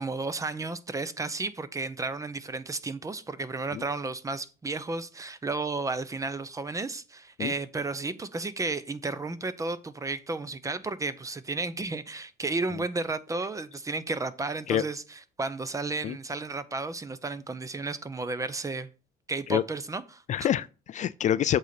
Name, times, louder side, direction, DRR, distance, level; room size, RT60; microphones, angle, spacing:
voice 1, 0.0-15.0 15.4-18.9 19.3-20.5, right 3 dB, 20° right, 0.7 m, -33 dB
voice 2, 20.3-21.6, left 10 dB, 45° left, 0.4 m, -26 dB
8.0 x 4.1 x 5.9 m
cardioid pair, 110°, 17 cm